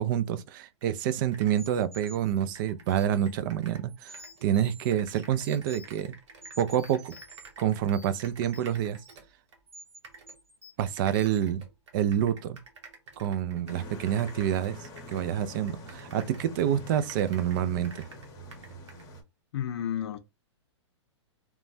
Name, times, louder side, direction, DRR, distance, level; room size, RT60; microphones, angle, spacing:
voice 1, 0.0-6.1 6.6-7.2 7.6-9.0 10.8-11.6 11.9-12.6 13.2-14.8 15.1-18.0, right 10 dB, 45° right, 0.4 m, -27 dB
sound 1, 0.8-0.9 1.2-3.9 4.1-9.6 10.0-10.4 10.9-16.5 16.8-19.1, right 4 dB, 70° right, 1.0 m, -51 dB
sound 2, 1.6-3.3 3.9-6.1 6.4-7.5 7.7-9.3 9.7-10.0 10.3-10.9 11.1-11.4, right 1 dB, 15° right, 1.2 m, -51 dB
sound 3, 13.7-19.2, equal, 25° left, 0.8 m, -45 dB
voice 2, 19.5-20.2, left 9 dB, 60° left, 0.6 m, -31 dB
3.0 x 2.2 x 2.6 m
hypercardioid pair, 135°, 15 cm